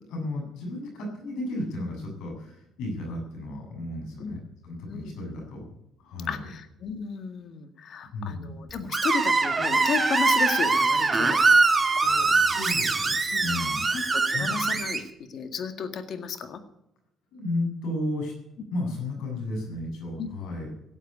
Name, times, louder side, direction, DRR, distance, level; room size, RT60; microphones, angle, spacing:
voice 1, 0.1-6.4 8.1-8.5 12.3-13.9 14.3-14.6 17.3-18.3 18.7-20.7, left 2 dB, 85° left, 2 dB, 7.5 m, -33 dB
voice 2, 6.3-12.3 12.6-12.7 13.3-13.5 13.9-15.0 15.3-16.6 20.2-20.3, left 6 dB, 60° left, 8 dB, 1.9 m, -34 dB
Screech, 8.9-15.0, right 3 dB, 25° right, 2.1 m, -23 dB
17.5 x 8.3 x 8.3 m, 0.81 s
cardioid pair, 95°, 0 cm